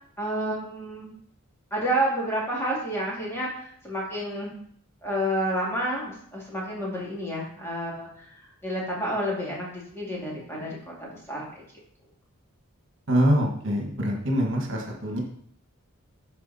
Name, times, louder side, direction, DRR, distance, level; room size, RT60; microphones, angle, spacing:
voice 1, 0.2-1.1 1.7-4.6 5.0-11.6, right 1 dB, 10° left, -5 dB, 2.6 m, -30 dB
voice 2, 13.1-15.2, equal, 60° right, 0 dB, 1.6 m, -24 dB
12.0 x 4.7 x 4.2 m, 0.64 s
head